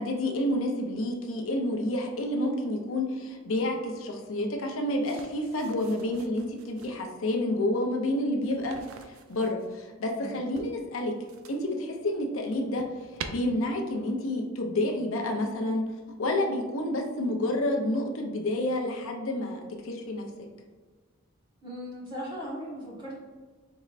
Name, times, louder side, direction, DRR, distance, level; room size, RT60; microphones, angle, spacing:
voice 1, 0.0-8.8 9.1-11.1 11.5-12.8 13.3-15.8 16.2-20.2, left 1 dB, 65° left, 1 dB, 0.5 m, -29 dB
sound 1, 5.0-7.0 8.4-9.8 10.5-11.8 12.2-13.3, right 6 dB, 70° right, 0.3 m, -46 dB
voice 2, 21.6-23.1, equal, 20° right, -7 dB, 1.2 m, -38 dB
4.4 x 3.2 x 2.4 m, 1.4 s
head